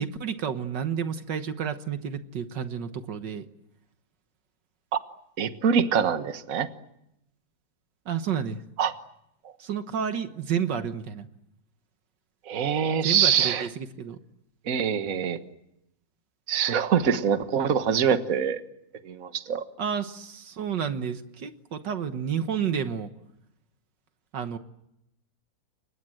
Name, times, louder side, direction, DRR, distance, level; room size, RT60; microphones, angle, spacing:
voice 1, 0.0-3.5 8.1-8.6 9.6-11.3 13.0-14.2 19.8-23.1 24.3-24.6, right 7 dB, 70° right, 9 dB, 1.9 m, -30 dB
voice 2, 5.4-6.7 8.8-8.9 12.5-13.7 14.7-15.4 16.5-18.6 19.0-19.6, right 7 dB, 50° right, 9 dB, 1.7 m, -24 dB
30.0 x 24.0 x 7.7 m, 0.83 s
omnidirectional pair, 2.0 m